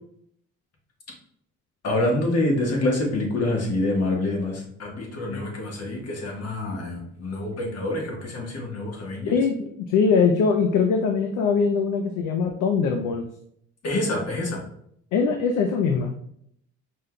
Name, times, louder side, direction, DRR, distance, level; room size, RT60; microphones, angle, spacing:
voice 1, 1.8-9.3 13.8-14.6, left 2 dB, 55° left, 0 dB, 1.3 m, -26 dB
voice 2, 9.2-13.2 15.1-16.1, left 5 dB, 85° left, 4 dB, 0.5 m, -22 dB
5.2 x 3.8 x 2.2 m, 0.69 s
cardioid pair, 90°, 30 cm